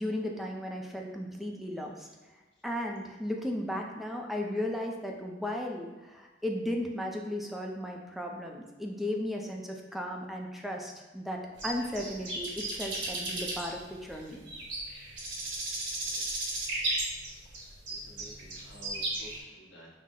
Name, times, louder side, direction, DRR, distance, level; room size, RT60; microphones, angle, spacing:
voice 1, 0.0-2.1 2.6-14.4, left 1 dB, ahead, 1 dB, 0.4 m, -35 dB
sound 1, 11.6-19.4, right 2 dB, 70° right, 1.1 m, -35 dB
voice 2, 16.0-16.5 18.0-19.9, equal, 65° left, -3 dB, 1.0 m, -52 dB
5.7 x 2.0 x 3.7 m, 1.2 s
head